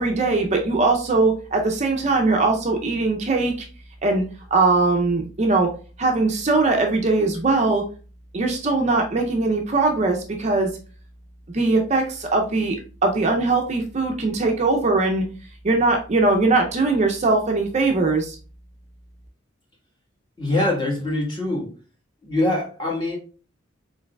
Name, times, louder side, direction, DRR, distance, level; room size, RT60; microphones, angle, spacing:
voice 1, 0.0-3.7 4.0-4.2 4.5-5.7 6.0-7.8 8.3-10.7 11.5-12.8 13.0-15.2 15.6-18.4, right 3 dB, 35° right, 3 dB, 0.5 m, -20 dB
voice 2, 20.4-21.7 22.2-23.2, left 1 dB, 25° left, -3 dB, 1.3 m, -23 dB
4.7 x 3.9 x 2.2 m, 0.37 s
head